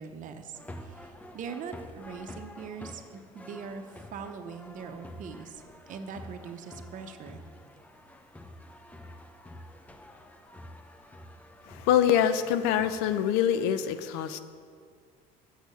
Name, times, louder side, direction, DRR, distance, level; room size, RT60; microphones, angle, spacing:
voice 1, 0.0-7.4, right 6 dB, 50° right, 6 dB, 0.8 m, -42 dB
sound 1, 0.5-13.2, left 1 dB, 10° left, 0.7 m, -48 dB
voice 2, 11.7-14.4, left 9 dB, 75° left, 11 dB, 0.5 m, -25 dB
6.4 x 6.2 x 6.7 m, 2.1 s
supercardioid pair, 80°, 17 cm